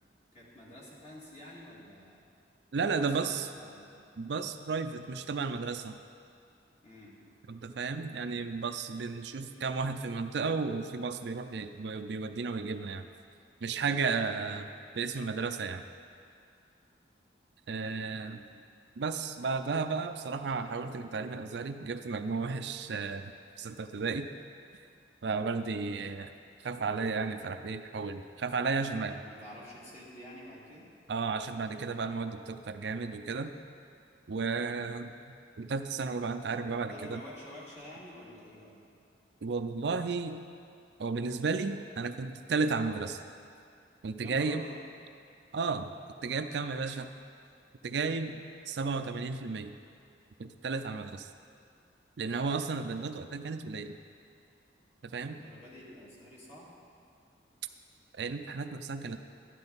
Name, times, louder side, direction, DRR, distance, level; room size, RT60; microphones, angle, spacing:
voice 1, 0.3-2.3 2.9-4.0 6.8-7.2 13.8-15.0 17.7-18.5 29.1-30.9 36.8-38.8 44.2-44.8 55.1-56.7, left 1 dB, 35° left, -6 dB, 2.4 m, -50 dB
voice 2, 2.7-3.5 4.2-5.9 7.5-13.1 13.6-14.7 15.0-15.8 17.7-18.4 19.0-23.3 23.6-24.3 25.2-26.3 26.6-29.1 31.1-33.5 34.3-35.1 35.6-37.2 39.4-40.4 41.0-43.2 44.0-44.6 45.5-45.9 46.2-47.1 47.8-49.8 50.4-51.3 52.2-54.0 55.0-55.4 58.2-59.2, right 4 dB, 65° right, 8 dB, 0.5 m, -33 dB
12.5 x 10.5 x 4.0 m, 2.4 s
head